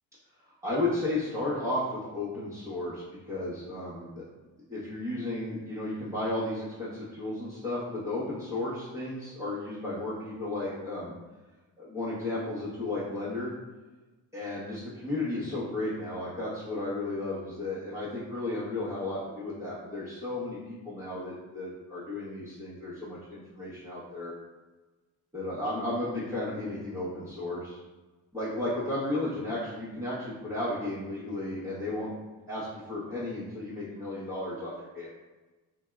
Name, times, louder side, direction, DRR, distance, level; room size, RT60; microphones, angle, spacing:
voice 1, 0.6-4.2 4.7-11.1 11.8-13.5 14.3-24.3 25.3-27.8 28.3-32.1 32.5-35.1, left 2 dB, 5° right, -13 dB, 1.0 m, -34 dB
2.7 x 2.2 x 2.3 m, 1.2 s
supercardioid pair, 55°, 42 cm